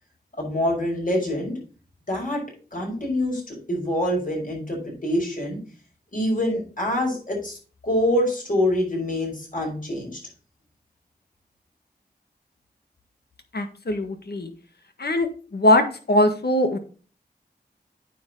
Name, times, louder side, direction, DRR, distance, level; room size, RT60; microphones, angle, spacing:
voice 1, 0.4-1.5 2.1-2.4 2.7-5.6 6.1-7.6 7.8-10.2, left 1 dB, 50° left, -1 dB, 5.4 m, -25 dB
voice 2, 13.5-14.5 15.0-15.3 15.5-15.8 16.1-16.8, left 1 dB, 70° left, 6 dB, 1.6 m, -20 dB
9.3 x 7.1 x 3.9 m, 0.38 s
wide cardioid pair, 50°, 17 cm